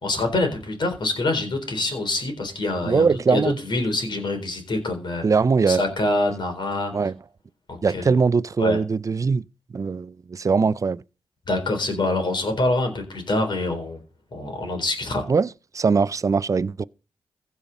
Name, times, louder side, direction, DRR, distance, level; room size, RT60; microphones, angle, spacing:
voice 1, 0.0-5.2 5.7-6.9 7.7-8.1 8.6-8.8 11.5-14.0 14.3-15.2, left 2 dB, 60° left, 4.0 m, -25 dB
voice 2, 2.8-3.6 5.2-5.8 6.9-7.2 7.8-9.4 9.7-11.0 15.3-15.5 15.7-16.8, right 5 dB, 40° right, 0.4 m, -21 dB
15.5 x 5.7 x 5.3 m
cardioid pair, 60°, 9 cm